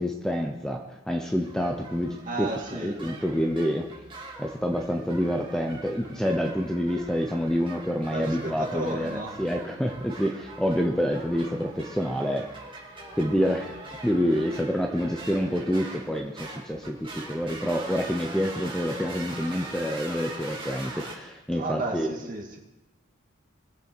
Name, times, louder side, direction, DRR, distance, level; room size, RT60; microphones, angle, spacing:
voice 1, 0.0-3.9 4.4-12.5 13.2-13.7 14.0-22.2, equal, 5° left, 2 dB, 0.8 m, -27 dB
sound 1, 1.3-21.1, right 2 dB, 25° right, 2.4 m, -42 dB
voice 2, 2.2-3.2 8.1-9.4 21.5-22.6, right 2 dB, 40° right, 1 dB, 2.0 m, -33 dB
21.0 x 7.5 x 4.6 m, 1.0 s
head